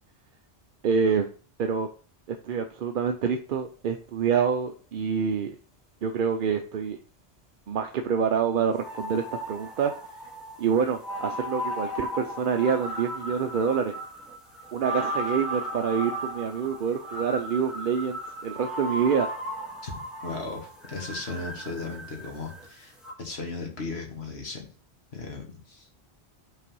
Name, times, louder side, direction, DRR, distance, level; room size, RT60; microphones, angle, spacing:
voice 1, 0.8-1.3 1.6-1.9 2.3-5.6 6.0-7.0 7.7-9.9 10.6-14.0 14.7-19.3, right 6 dB, 60° right, 5 dB, 0.7 m, -26 dB
sound 1, 8.8-22.7 23.0-23.1, equal, ahead, 1.7 m, -36 dB
voice 2, 20.2-22.9 23.2-24.7 25.1-25.9, left 3 dB, 70° left, 2 dB, 1.8 m, -36 dB
5.8 x 4.0 x 5.2 m, 0.39 s
omnidirectional pair, 1.1 m